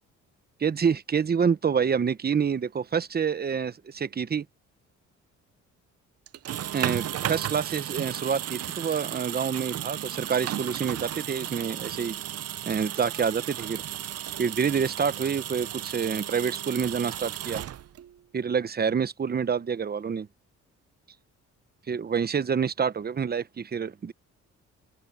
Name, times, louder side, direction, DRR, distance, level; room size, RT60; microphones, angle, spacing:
voice 1, 0.6-4.5 6.7-12.2 12.6-13.8 14.4-17.6 18.3-20.3 21.9-24.1, right 6 dB, 30° right, 1.0 m, -27 dB
sound 1, 6.3-18.2, right 11 dB, 55° right, 0.7 m, -34 dB
open air
cardioid pair, 90°, 30 cm